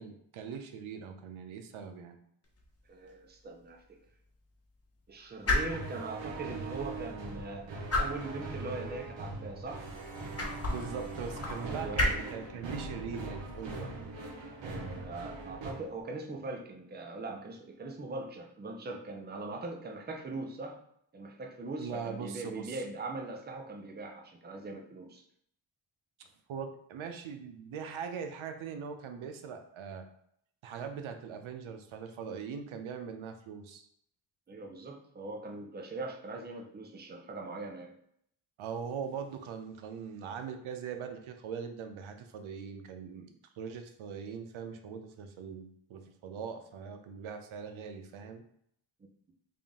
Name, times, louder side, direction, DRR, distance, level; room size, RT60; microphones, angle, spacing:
voice 1, 0.0-2.2 10.7-13.9 21.8-22.8 26.5-30.0 30.6-33.9 38.6-48.4, right 6 dB, 85° right, 6 dB, 0.6 m, -41 dB
sound 1, 2.4-16.0, left 2 dB, 30° left, 0.9 m, -38 dB
voice 2, 2.9-4.0 5.1-9.9 11.6-12.2 14.6-20.8 21.1-25.2 34.5-38.0, right 3 dB, 20° right, 2 dB, 0.6 m, -41 dB
sound 2, 5.5-15.7, right 3 dB, 70° right, 1.0 m, -41 dB
3.6 x 2.5 x 3.5 m, 0.71 s
cardioid pair, 70°, 47 cm